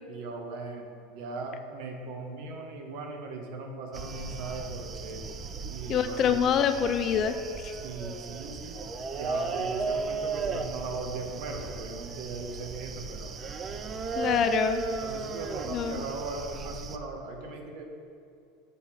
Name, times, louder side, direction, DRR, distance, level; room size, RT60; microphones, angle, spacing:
voice 1, 0.1-5.2 5.7-6.4 7.8-13.3 14.1-14.5 15.0-17.8, right 3 dB, 65° right, 3 dB, 0.9 m, -39 dB
sound 1, 3.9-17.0, right 4 dB, 30° right, 0.4 m, -35 dB
voice 2, 5.9-7.4 7.6-7.7 14.1-14.8 15.7-16.0, left 8 dB, 40° left, 10 dB, 0.3 m, -26 dB
6.9 x 4.2 x 3.6 m, 2.5 s
supercardioid pair, 110°, 0 cm